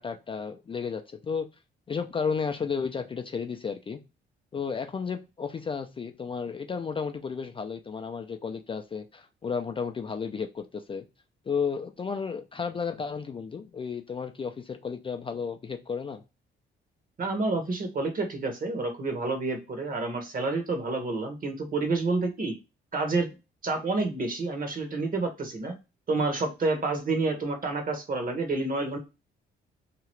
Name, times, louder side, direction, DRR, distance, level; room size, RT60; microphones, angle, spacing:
voice 1, 0.0-1.5 1.9-4.0 4.5-11.1 11.5-16.2, left 6 dB, 25° left, 6 dB, 0.3 m, -33 dB
voice 2, 17.2-22.6 22.9-23.3 23.6-25.7 26.1-29.0, right 3 dB, 45° right, 5 dB, 1.1 m, -29 dB
2.8 x 2.4 x 3.0 m, 0.27 s
cardioid pair, 90°, 20 cm